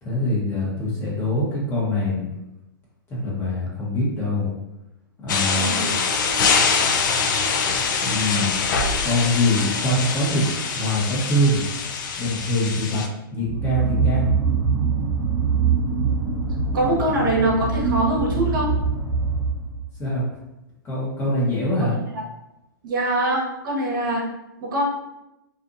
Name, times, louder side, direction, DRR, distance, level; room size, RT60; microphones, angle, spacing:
voice 1, 0.0-2.3 3.1-4.5 5.2-5.8 8.0-8.5 9.0-10.5 10.7-11.6 12.2-13.0 13.3-14.3 20.0-20.3 20.8-21.9, left 1 dB, 20° left, -6 dB, 1.0 m, -23 dB
sound 1, 5.3-13.1, left 5 dB, 60° left, 0.4 m, -24 dB
voice 2, 5.6-5.9 16.7-18.7 21.8-21.9 22.8-24.2 24.6-24.8, right 1 dB, 65° right, -2 dB, 0.9 m, -23 dB
sound 2, 13.4-19.9, right 5 dB, 20° right, 0.8 m, -23 dB
2.6 x 2.4 x 2.5 m, 0.92 s
hypercardioid pair, 135°, 12 cm